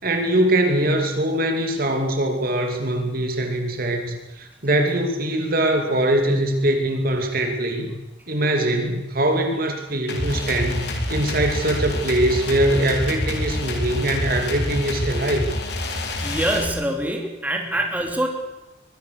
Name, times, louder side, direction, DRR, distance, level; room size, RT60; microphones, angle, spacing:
voice 1, 0.0-7.9 8.3-15.5, right 1 dB, 50° right, 4 dB, 2.9 m, -22 dB
sound 1, 10.1-16.6, left 1 dB, 60° left, 4.0 m, -27 dB
voice 2, 16.2-18.3, right 1 dB, 10° right, 2 dB, 3.3 m, -24 dB
23.5 x 21.5 x 6.7 m, 1.1 s
head